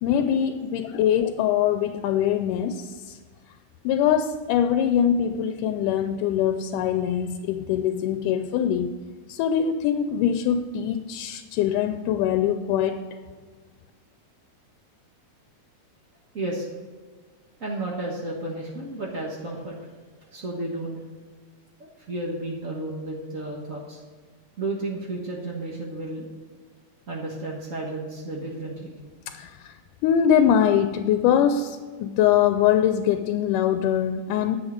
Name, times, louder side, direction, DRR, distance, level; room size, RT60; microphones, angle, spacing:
voice 1, 0.0-3.2 3.8-9.0 9.3-13.0 29.3-29.8 30.0-34.6, left 9 dB, 85° left, 9 dB, 2.1 m, -23 dB
voice 2, 16.3-16.7 17.6-19.8 20.3-21.0 21.8-24.0 24.6-26.3 27.1-28.9, right 2 dB, 65° right, -2 dB, 0.8 m, -32 dB
11.0 x 7.7 x 5.1 m, 1.5 s
omnidirectional pair, 3.7 m